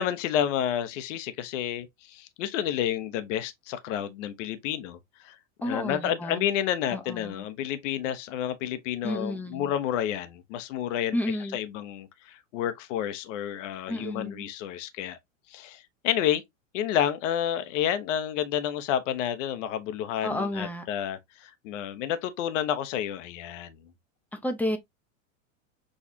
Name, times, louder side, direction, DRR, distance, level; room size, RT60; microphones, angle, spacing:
voice 1, 0.0-5.4 5.6-11.2 11.5-15.2 15.5-16.4 16.7-23.8, left 10 dB, 65° left, 0.8 m, -30 dB
voice 2, 5.6-6.5 6.9-7.4 9.0-9.7 11.1-11.6 13.9-14.5 20.2-20.9 24.3-24.8, left 1 dB, 5° left, 0.7 m, -31 dB
6.4 x 2.4 x 2.7 m
hypercardioid pair, 120°, 40 cm